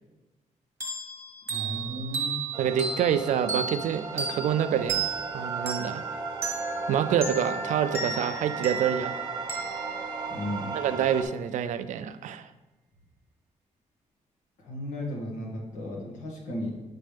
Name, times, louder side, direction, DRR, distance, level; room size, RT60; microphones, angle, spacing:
sound 1, 0.8-11.1, right 4 dB, 20° right, 1.1 m, -35 dB
voice 1, 1.5-2.4 10.3-10.7 14.6-16.7, left 1 dB, 75° left, -2 dB, 1.6 m, -35 dB
sound 2, 2.5-11.2, right 4 dB, 35° right, 0.8 m, -36 dB
voice 2, 2.6-5.1 5.3-6.0 6.9-9.2 10.7-12.5, right 9 dB, 75° right, 12 dB, 0.4 m, -27 dB
7.6 x 4.1 x 3.4 m, 1.1 s
wide cardioid pair, 150°, 13 cm